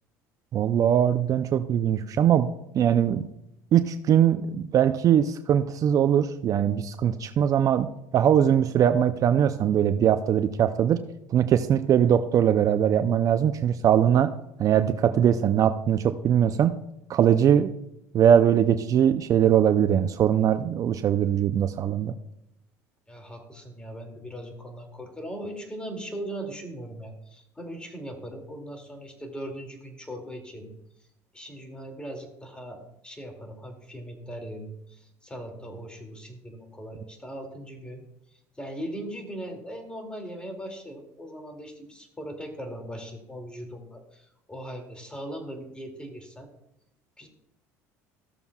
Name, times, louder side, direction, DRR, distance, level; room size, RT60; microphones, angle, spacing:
voice 1, 0.5-2.5 2.7-3.3 3.7-7.9 8.1-11.0 11.3-14.3 14.6-16.7 17.1-17.7 18.1-22.1, right 9 dB, 50° right, 10 dB, 0.5 m, -21 dB
voice 2, 23.1-30.7 31.3-38.0 38.3-46.5 47.2-47.3, right 1 dB, 10° left, 3 dB, 2.5 m, -39 dB
15.0 x 6.9 x 2.4 m, 0.81 s
hypercardioid pair, 75°, 8 cm